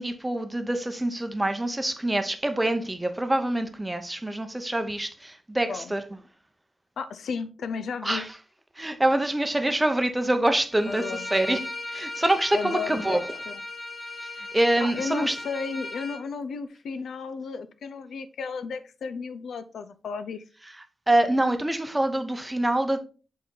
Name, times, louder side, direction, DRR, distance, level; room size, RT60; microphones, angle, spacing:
voice 1, 0.0-6.0 8.0-8.3 8.8-11.6 11.9-13.3 14.4-15.4 21.1-23.0, right 1 dB, 10° right, 0.7 m, -25 dB
voice 2, 7.0-8.3 10.9-11.3 12.5-13.2 13.5-13.6 14.8-20.4, left 5 dB, 85° left, 0.6 m, -34 dB
Bowed string instrument, 10.7-16.2, left 2 dB, 30° left, 2.2 m, -37 dB
7.4 x 4.1 x 3.9 m
wide cardioid pair, 170°, 0 cm